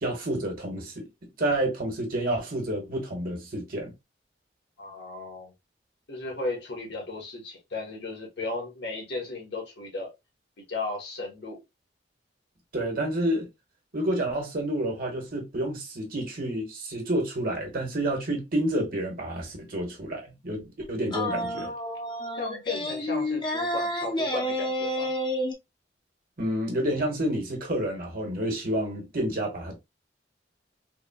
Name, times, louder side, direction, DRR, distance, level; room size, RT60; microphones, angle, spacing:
voice 1, 0.0-3.9 12.7-13.5 13.9-21.7 26.4-29.8, right 1 dB, 55° right, 1.2 m, -29 dB
voice 2, 4.8-5.5 6.1-10.1 10.7-11.6 22.4-25.1, left 2 dB, 70° left, 1.4 m, -35 dB
sound 1, 21.1-25.5, left 1 dB, 25° left, 0.7 m, -30 dB
3.5 x 2.2 x 2.2 m
head